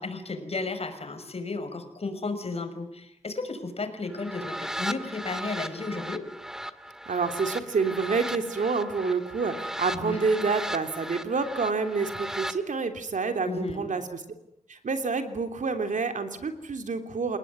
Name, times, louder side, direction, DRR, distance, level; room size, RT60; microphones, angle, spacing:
voice 1, 0.0-6.3 9.9-10.2 13.5-13.9, left 3 dB, 55° left, 6 dB, 6.0 m, -33 dB
sound 1, 4.1-12.6, equal, 5° right, 1.8 m, -37 dB
voice 2, 7.1-14.2 14.7-17.4, right 4 dB, 80° right, 7 dB, 3.3 m, -28 dB
29.0 x 19.0 x 9.7 m, 0.80 s
wide cardioid pair, 80°, 13 cm